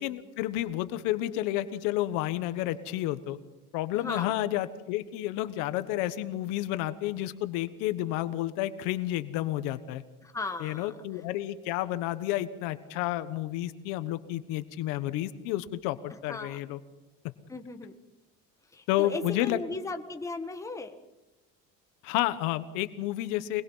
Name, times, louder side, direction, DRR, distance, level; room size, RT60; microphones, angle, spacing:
voice 1, 0.0-3.4 3.7-10.0 10.6-16.8 18.9-19.6 22.0-23.6, left 14 dB, 85° left, 12 dB, 1.4 m, -31 dB
voice 2, 3.9-4.4 10.2-10.9 16.3-16.6 17.5-17.9 18.7-21.0, left 3 dB, 10° left, 5 dB, 1.6 m, -37 dB
24.5 x 21.0 x 5.7 m, 0.99 s
cardioid pair, 145°, 31 cm